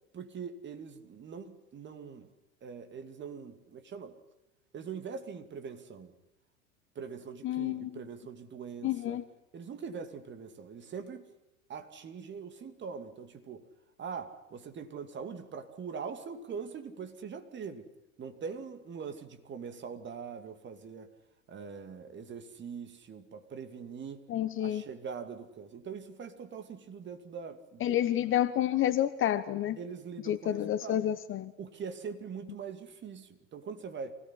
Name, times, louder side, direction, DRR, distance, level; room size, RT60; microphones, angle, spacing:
voice 1, 0.1-2.3 2.6-4.2 4.7-6.1 6.9-9.2 9.5-11.3 11.7-13.6 14.0-17.9 18.2-21.1 21.5-24.2 24.6-28.3 29.8-31.0 31.6-34.1, right 6 dB, 25° right, 9 dB, 2.5 m, -42 dB
voice 2, 7.4-7.9 8.8-9.2 24.3-24.8 27.8-29.8 30.3-31.5, left 12 dB, 30° left, 13 dB, 1.1 m, -29 dB
25.0 x 17.5 x 9.9 m, 0.90 s
figure-of-eight pair, 85°, 41 cm